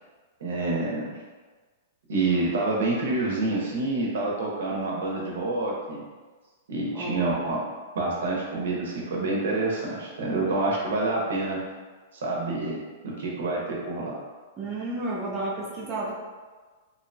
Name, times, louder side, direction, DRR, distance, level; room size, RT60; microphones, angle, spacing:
voice 1, 0.4-1.2 2.1-6.0 6.7-7.6 7.9-11.6 12.1-12.8 13.0-14.1, right 2 dB, 75° right, -3 dB, 0.7 m, -27 dB
voice 2, 6.9-7.3 14.6-16.1, right 2 dB, 15° right, -6 dB, 0.4 m, -31 dB
2.7 x 2.1 x 2.6 m, 1.4 s
supercardioid pair, 170°, 0 cm